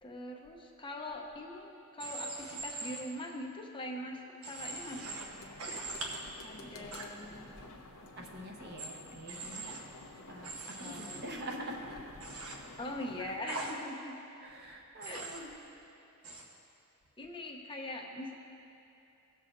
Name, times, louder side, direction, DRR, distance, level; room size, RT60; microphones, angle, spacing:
voice 1, 0.0-4.2 4.4-5.6 6.4-8.2 10.8-11.2 12.8-14.2 15.0-15.3 17.2-18.3, left 1 dB, 25° left, 1 dB, 0.7 m, -42 dB
Human voice / Train, 2.0-3.0 4.4-5.2 5.6-6.2 6.9-7.0 8.8-8.9 9.3-9.8 10.4-11.2 12.2-12.5 13.5-13.7 15.0-15.4 16.2-16.4, right 3 dB, 70° right, 1.1 m, -41 dB
sound 1, 4.6-13.4, left 2 dB, 65° left, 0.8 m, -51 dB
voice 2, 6.6-7.5 8.2-9.7 10.3-12.2 14.4-15.5, right 1 dB, 50° right, 0 dB, 1.0 m, -45 dB
17.0 x 6.8 x 2.6 m, 2.8 s
head